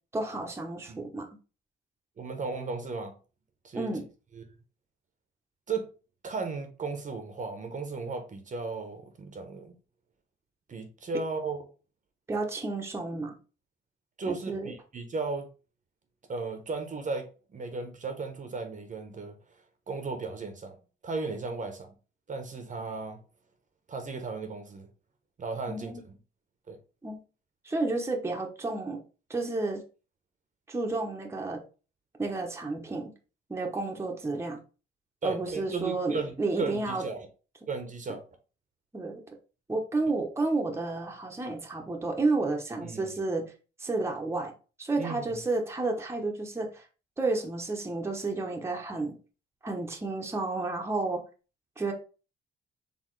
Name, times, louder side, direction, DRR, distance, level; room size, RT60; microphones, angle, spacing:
voice 1, 0.1-1.3 3.7-4.0 12.3-13.4 14.3-14.7 25.7-26.0 27.0-27.2 27.6-29.0 29.3-29.8 30.7-31.6 32.2-33.1 33.5-34.6 35.2-37.0 38.9-39.2 39.7-43.5 43.8-44.5 44.8-46.9 47.2-49.2 49.6-51.2 51.8-51.9, right 3 dB, 15° right, 0.9 m, -31 dB
voice 2, 2.2-3.1 3.6-3.9 4.3-4.4 5.7-5.9 6.2-9.8 10.7-11.6 14.2-15.5 16.3-19.4 19.9-20.8 21.0-21.9 22.3-23.2 23.9-24.9 25.4-26.2 26.7-26.8 35.2-37.3 37.7-38.2 42.8-43.2 45.0-45.2, right 4 dB, 40° right, 0.9 m, -35 dB
4.1 x 3.5 x 3.2 m
cardioid pair, 90°, 20 cm